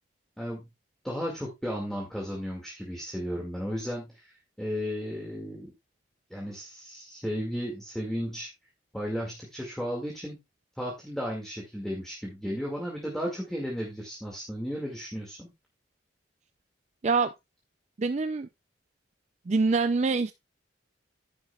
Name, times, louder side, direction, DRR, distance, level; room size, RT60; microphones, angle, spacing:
voice 1, 1.0-5.7 6.3-8.5 8.9-10.4 10.8-15.5, equal, ahead, 2.0 m, -34 dB
voice 2, 18.0-18.5 19.5-20.3, right 4 dB, 35° right, 0.4 m, -25 dB
10.5 x 9.8 x 2.3 m
head